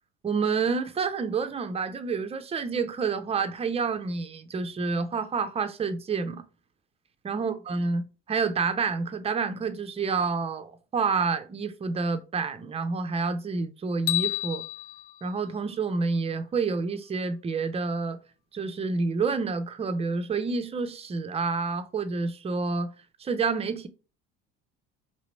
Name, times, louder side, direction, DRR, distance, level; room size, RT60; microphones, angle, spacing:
voice 1, 0.2-6.4 7.2-14.6 15.2-18.2 18.5-22.9 23.2-23.9, right 4 dB, 20° right, 0.5 m, -28 dB
sound 1, 14.1-16.3, left 16 dB, 70° left, 0.6 m, -32 dB
3.0 x 2.9 x 3.1 m
hypercardioid pair, 80°, 32 cm